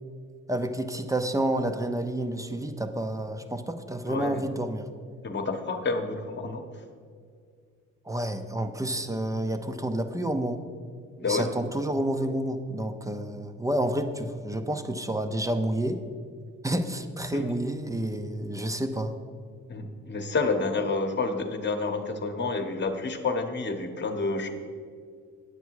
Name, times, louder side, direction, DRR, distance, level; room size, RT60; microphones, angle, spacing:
voice 1, 0.5-4.9 8.1-10.6 11.3-16.0 16.6-19.1, right 1 dB, 10° right, 8 dB, 0.6 m, -29 dB
voice 2, 4.0-4.4 5.2-6.6 11.2-11.5 17.3-17.5 19.7-24.5, left 3 dB, 35° left, 5 dB, 1.1 m, -29 dB
8.9 x 8.3 x 4.7 m, 2.1 s
cardioid pair, 90°, 30 cm